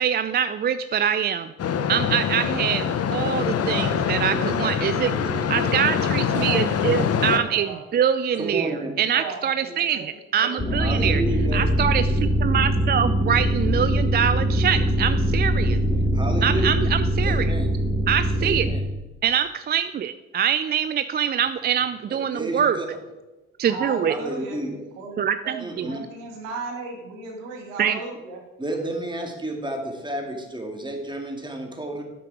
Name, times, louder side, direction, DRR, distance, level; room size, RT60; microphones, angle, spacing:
voice 1, 0.0-1.5 1.9-5.1 5.5-8.7 9.0-11.2 11.5-15.8 16.4-17.5 18.1-18.7 19.2-22.8 23.6-24.1 25.2-25.9 27.8-28.0, right 8 dB, 25° right, 12 dB, 0.4 m, -24 dB
sound 1, 1.6-7.4, left 7 dB, 40° left, 0.8 m, -24 dB
voice 2, 3.6-4.8 5.0-5.7 8.3-8.9 10.8-11.7 16.1-16.7 17.2-17.7 18.4-18.8 22.1-22.9 24.0-24.8 25.6-26.0 28.6-32.0, right 1 dB, 10° right, 2 dB, 2.3 m, -31 dB
voice 3, 5.9-7.8 8.6-8.7 9.0-10.1 10.3-10.8 23.7-24.6 25.0-28.4, right 3 dB, 80° right, 1 dB, 1.8 m, -36 dB
sound 2, 10.6-18.8, equal, 10° left, 1.6 m, -22 dB
9.4 x 7.8 x 4.8 m, 1.1 s
hypercardioid pair, 45°, 39 cm